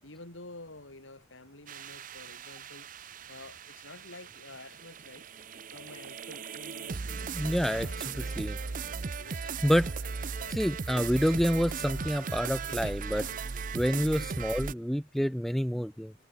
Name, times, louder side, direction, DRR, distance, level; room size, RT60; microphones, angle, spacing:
voice 1, 0.0-2.9 3.3-5.3 5.7-10.6 10.9-12.3 12.7-13.4 14.2-14.3, left 2 dB, 75° left, 5.5 m, -50 dB
sound 1, 1.7-14.7, right 5 dB, 40° right, 0.6 m, -37 dB
voice 2, 7.3-7.9 8.2-8.6 9.6-9.9 10.5-13.2 13.7-16.1, equal, ahead, 0.6 m, -28 dB
head